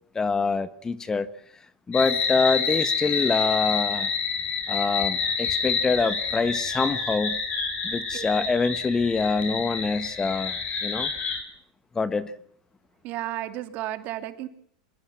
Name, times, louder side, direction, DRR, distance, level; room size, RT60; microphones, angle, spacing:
voice 1, 0.1-1.3 1.9-4.1 4.7-7.4 7.8-10.5 10.8-11.1 11.9-12.3, left 4 dB, 15° left, 1.4 m, -25 dB
sound 1, 1.9-11.4, left 5 dB, 35° left, 7.1 m, -28 dB
voice 2, 13.0-14.5, right 14 dB, 50° right, 2.9 m, -33 dB
25.5 x 21.5 x 5.8 m
supercardioid pair, 110°, 4 cm